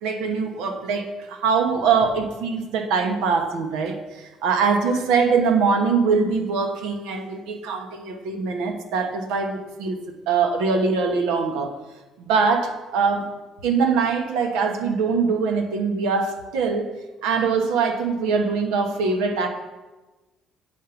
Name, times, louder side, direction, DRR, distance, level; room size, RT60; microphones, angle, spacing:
voice 1, 0.0-10.0 10.3-11.7 12.2-13.3 13.6-16.9 17.2-19.5, right 5 dB, 85° right, 4 dB, 1.1 m, -23 dB
8.5 x 5.3 x 6.9 m, 1.2 s
supercardioid pair, 80°, 0 cm